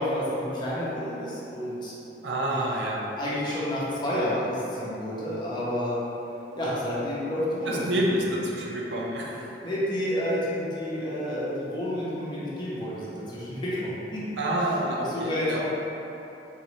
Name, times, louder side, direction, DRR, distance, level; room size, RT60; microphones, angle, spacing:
voice 1, 0.0-1.9 2.5-2.6 3.2-6.0 6.6-8.2 9.6-14.2 15.1-15.7, equal, 25° left, -8 dB, 0.7 m, -30 dB
voice 2, 2.2-3.0 7.7-9.6 14.4-15.6, right 1 dB, 75° right, -3 dB, 0.5 m, -28 dB
3.8 x 2.6 x 3.1 m, 3.0 s
head